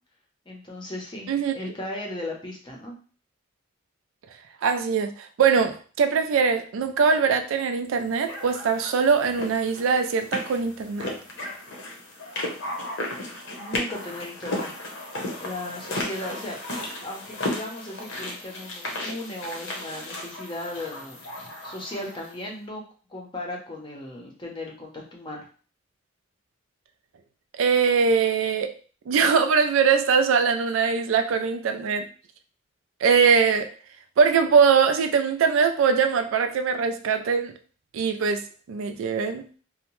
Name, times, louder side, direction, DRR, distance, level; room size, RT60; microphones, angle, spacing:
voice 1, 0.5-3.0 13.5-14.7 15.4-16.6 17.0-21.2 21.6-22.8 23.1-25.5, left 1 dB, 25° left, 0.6 m, -36 dB
voice 2, 4.6-11.1 27.6-28.7 29.1-32.0 33.0-33.7 34.2-37.5 37.9-39.4, right 6 dB, 80° right, 0.3 m, -22 dB
sound 1, 8.3-22.3, left 1 dB, 65° left, 0.7 m, -35 dB
2.7 x 2.1 x 3.0 m
head